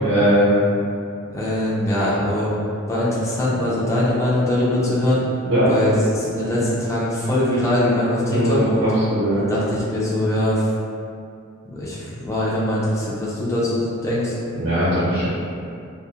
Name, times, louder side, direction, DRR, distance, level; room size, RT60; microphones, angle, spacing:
voice 1, 0.0-0.5 5.4-5.7 8.2-9.5 14.5-15.3, equal, 60° right, -11 dB, 0.7 m, -20 dB
voice 2, 1.3-2.5 2.9-5.2 5.6-8.9 9.4-10.6 11.7-14.3, left 1 dB, 15° left, -7 dB, 0.4 m, -22 dB
2.2 x 2.0 x 2.7 m, 2.4 s
head